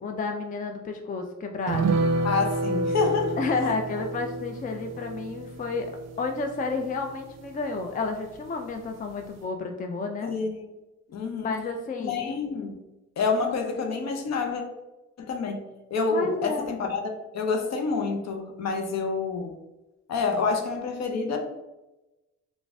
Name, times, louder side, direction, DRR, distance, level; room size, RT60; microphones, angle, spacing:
voice 1, 0.0-2.1 3.4-5.9 6.2-10.3 11.4-12.4 16.1-16.7, left 4 dB, 30° left, 4 dB, 0.4 m, -31 dB
sound 1, 1.7-8.5 8.8-8.9 9.2-9.4, right 2 dB, 60° right, 0.5 m, -30 dB
voice 2, 2.2-3.4 10.2-10.6 11.1-11.5 12.0-12.8 13.2-14.6 15.2-15.6 15.9-19.5 20.1-21.4, left 4 dB, 60° left, 4 dB, 0.8 m, -28 dB
3.9 x 2.4 x 3.4 m, 1.0 s
cardioid pair, 90°, 30 cm